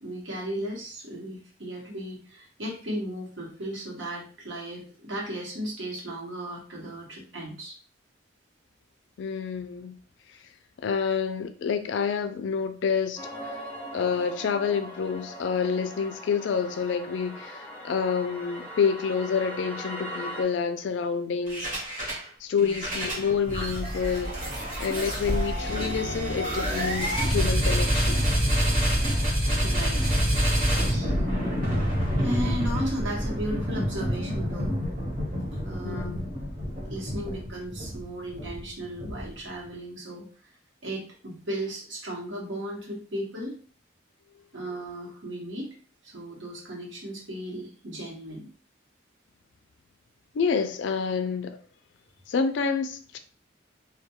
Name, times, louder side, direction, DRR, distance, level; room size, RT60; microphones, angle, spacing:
voice 1, 0.0-7.8 22.5-22.8 29.6-30.0 30.6-31.2 32.2-34.8 35.6-36.2 36.9-40.3 40.8-43.5 44.5-45.7 46.0-48.5, equal, 75° right, 1.0 m, -36 dB
voice 2, 9.2-10.0 10.8-13.6 13.9-22.1 22.4-24.3 24.8-28.3 35.8-36.2 50.3-51.6 52.3-53.2, left 6 dB, 65° left, 0.3 m, -28 dB
sound 1, 13.2-20.4, equal, 10° left, 0.6 m, -40 dB
sound 2, 21.5-22.2 22.6-39.5, equal, 45° right, 0.9 m, -27 dB
2.2 x 2.2 x 2.9 m
head